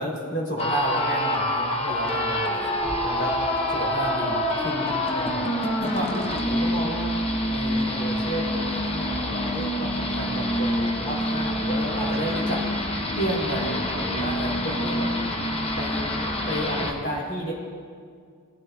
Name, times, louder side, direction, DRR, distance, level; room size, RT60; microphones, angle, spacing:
voice 1, 0.0-2.7 3.0-3.4 3.7-7.1 7.5-12.6 13.2-15.1 15.8-17.5, right 1 dB, 50° left, -3 dB, 3.2 m, -31 dB
sound 1, 0.6-16.9, left 1 dB, 25° left, 0.8 m, -26 dB
sound 2, 2.3-3.4 3.7-3.8 4.6-5.4 7.2-7.4 7.8-8.1 8.4-8.5 9.2-9.3 11.1-13.2, equal, 10° right, 1.5 m, -48 dB
18.0 x 11.5 x 2.3 m, 2.1 s
head